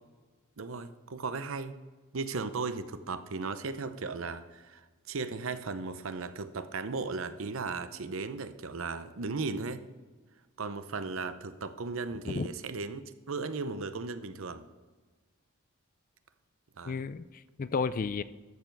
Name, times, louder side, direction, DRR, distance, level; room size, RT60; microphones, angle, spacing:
voice 1, 0.6-1.8 2.1-9.8 10.6-13.0 13.3-14.6 16.8-17.0, right 4 dB, 65° right, 11 dB, 0.7 m, -36 dB
voice 2, 16.9-18.2, left 4 dB, 40° left, 15 dB, 0.4 m, -32 dB
13.0 x 6.9 x 4.6 m, 1.3 s
head